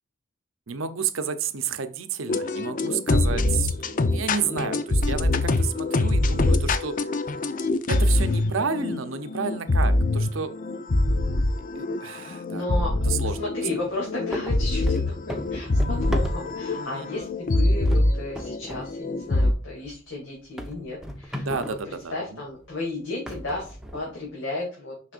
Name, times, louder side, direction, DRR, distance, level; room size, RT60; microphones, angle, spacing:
voice 1, 0.7-3.8 4.1-6.9 7.9-10.5 11.8-12.7 13.1-13.5 16.8-17.2 21.4-22.4, right 6 dB, 85° right, 10 dB, 0.8 m, -31 dB
sound 1, 2.3-19.5, left 2 dB, 45° left, 0.6 m, -24 dB
voice 2, 12.5-12.9 13.2-24.9, left 2 dB, 65° left, -5 dB, 2.8 m, -34 dB
sound 2, 13.7-13.9 14.3-16.8 17.2-17.5 17.8-18.9 19.2-19.3 19.8-19.9 20.6-21.9 22.6-22.7 23.3-24.3, equal, 5° right, 0.9 m, -36 dB
6.5 x 5.8 x 2.5 m, 0.38 s
head